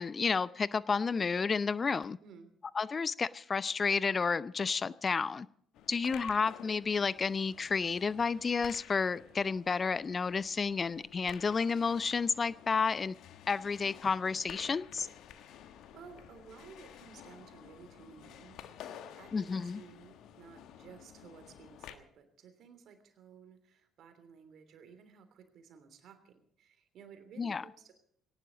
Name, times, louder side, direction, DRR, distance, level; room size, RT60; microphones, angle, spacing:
voice 1, 0.0-2.2 2.8-5.5 5.9-13.1 13.5-15.1 19.3-19.8 27.4-27.6, left 5 dB, 35° left, 18 dB, 0.6 m, -31 dB
sound 1, 5.7-21.9, left 10 dB, 65° left, 1.3 m, -52 dB
voice 2, 6.2-6.5 15.5-28.0, right 6 dB, 60° right, 9 dB, 3.1 m, -55 dB
19.0 x 18.5 x 3.9 m, 0.64 s
figure-of-eight pair, 50°, 0 cm